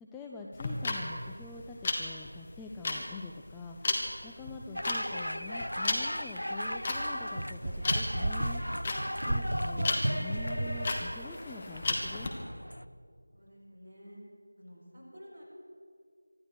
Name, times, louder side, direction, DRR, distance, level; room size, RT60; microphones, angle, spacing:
voice 1, 0.1-8.6 9.3-12.3, left 3 dB, 5° left, -1 dB, 0.4 m, -45 dB
sound 1, 0.5-12.3, left 3 dB, 20° left, 1.2 m, -34 dB
sound 2, 4.8-12.8, equal, 80° left, 0.6 m, -38 dB
sound 3, 6.6-10.9, right 1 dB, 50° right, 1.1 m, -34 dB
voice 2, 13.3-14.2 14.6-15.4, equal, 25° right, -7 dB, 5.4 m, -52 dB
24.5 x 11.5 x 4.7 m, 2.3 s
figure-of-eight pair, 170°, 0 cm